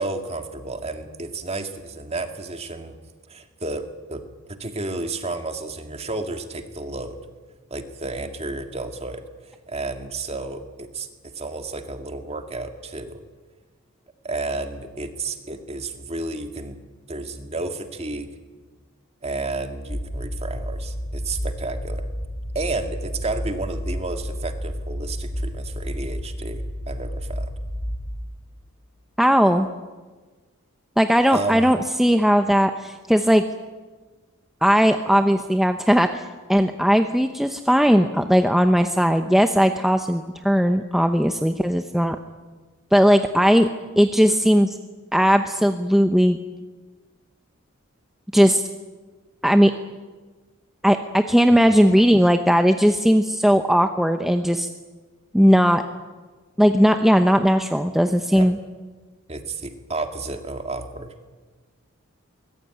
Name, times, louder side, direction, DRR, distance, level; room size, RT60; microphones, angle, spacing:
voice 1, 0.0-2.9 3.3-7.2 7.7-9.2 9.7-11.1 11.4-13.2 14.2-16.8 17.1-18.3 19.2-22.1 22.5-27.5 31.3-31.7 51.5-51.8 58.3-58.5 59.3-61.1, right 3 dB, 30° right, 6 dB, 2.0 m, -31 dB
crg bassloop, 19.9-28.2, equal, 30° left, 4.1 m, -31 dB
voice 2, 29.2-29.7 31.0-33.4 34.6-42.2 42.9-43.7 44.0-44.8 45.1-46.4 48.3-48.6 49.4-49.7 50.8-54.7 55.3-55.8 56.6-58.6, equal, ahead, 6 dB, 0.8 m, -18 dB
23.5 x 20.5 x 9.1 m, 1.3 s
head